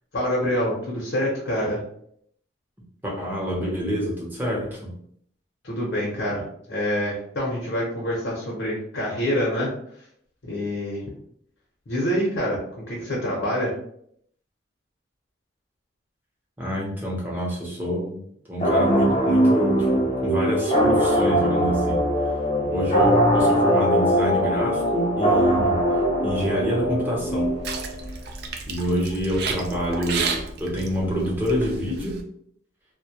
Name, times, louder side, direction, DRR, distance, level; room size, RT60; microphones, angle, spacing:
voice 1, 0.1-1.8 5.6-6.4 6.7-9.7 10.4-11.0 11.9-13.8, equal, 80° left, -5 dB, 0.8 m, -26 dB
voice 2, 3.0-4.9 16.6-18.2 18.4-22.0 22.7-25.8 26.2-27.5 28.7-32.2, equal, 10° right, -4 dB, 0.6 m, -27 dB
sound 1, 18.6-28.0, equal, 30° left, 0.4 m, -21 dB
sound 2, 27.1-32.2, right 4 dB, 60° right, 0.3 m, -32 dB
2.2 x 2.0 x 2.7 m, 0.67 s
head